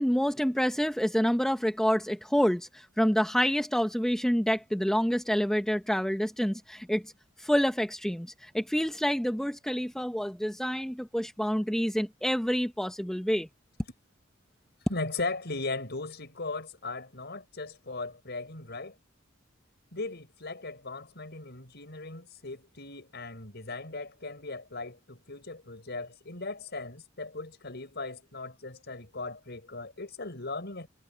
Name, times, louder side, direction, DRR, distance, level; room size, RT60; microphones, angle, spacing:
voice 1, 0.0-7.1 7.4-13.5, equal, 5° left, 0.9 m, -27 dB
voice 2, 14.9-18.9 19.9-30.9, left 3 dB, 55° left, 6.3 m, -38 dB
head